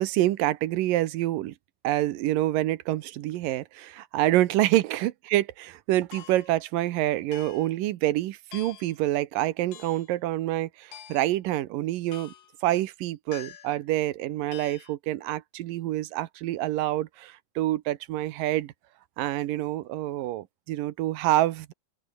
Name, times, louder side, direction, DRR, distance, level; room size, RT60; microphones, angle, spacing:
voice 1, 0.0-1.5 1.8-12.3 12.6-18.7 19.2-21.7, right 15 dB, 80° right, 2.6 m, -27 dB
sound 1, 6.1-6.6 7.3-7.8 8.5-9.0 9.7-10.1 10.9-11.4 12.1-12.5 13.3-13.8 14.5-14.9, left 10 dB, 90° left, 3.8 m, -46 dB
open air
omnidirectional pair, 4.0 m